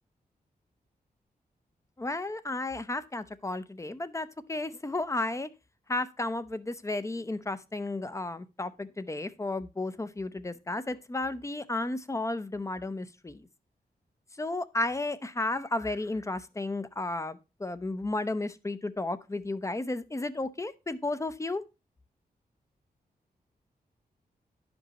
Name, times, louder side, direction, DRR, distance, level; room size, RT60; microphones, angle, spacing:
voice 1, 2.0-5.5 5.9-13.5 14.4-21.6, left 2 dB, 20° left, 0.6 m, -33 dB
11.0 x 5.3 x 2.9 m
wide cardioid pair, 90°, 16 cm